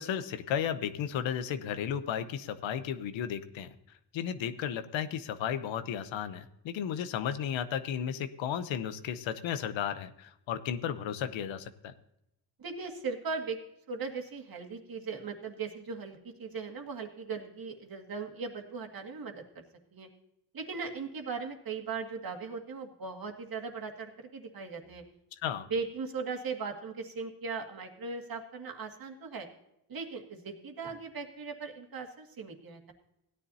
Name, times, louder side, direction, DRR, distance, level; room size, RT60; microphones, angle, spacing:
voice 1, 0.0-3.7 4.1-11.9 25.4-25.7, left 9 dB, 90° left, 12 dB, 0.9 m, -34 dB
voice 2, 12.6-13.6 13.9-19.6 19.9-20.1 20.5-25.0 25.7-29.5 29.9-32.9, right 4 dB, 50° right, 3 dB, 2.1 m, -38 dB
16.5 x 10.0 x 2.7 m, 0.82 s
cardioid pair, 95°, 45 cm